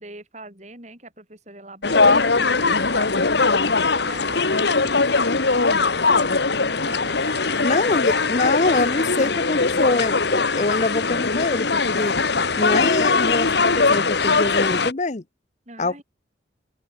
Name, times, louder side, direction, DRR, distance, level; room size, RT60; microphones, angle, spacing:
voice 1, 0.0-5.9 6.6-8.1 8.3-9.3 12.5-13.1 15.7-16.0, right 2 dB, 40° right, 7.4 m, -43 dB
sound 1, 1.8-14.9, left 4 dB, 65° left, 1.4 m, -20 dB
voice 2, 7.6-12.2 12.6-15.2 15.8-16.0, left 3 dB, 40° left, 0.8 m, -24 dB
open air
head